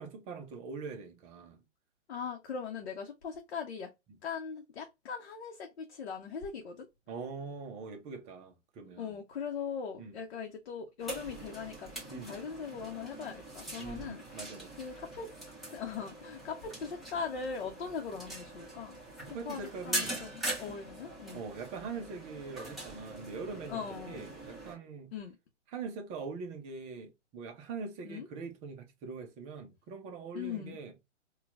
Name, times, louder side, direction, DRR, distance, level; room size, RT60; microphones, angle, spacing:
voice 1, 0.0-1.6 7.1-9.2 10.0-10.2 12.1-12.3 13.8-14.7 19.3-20.2 21.3-25.1 25.7-30.9, right 4 dB, 20° right, 0.6 m, -43 dB
voice 2, 2.1-3.9 4.2-6.9 9.0-15.3 15.7-19.0 19.2-21.4 23.7-24.2 25.1-25.4 28.0-28.3 30.3-30.8, left 6 dB, 55° left, 0.9 m, -40 dB
sound 1, 11.0-24.7, right 1 dB, ahead, 1.2 m, -42 dB
4.2 x 2.4 x 2.3 m
figure-of-eight pair, 125°, 36 cm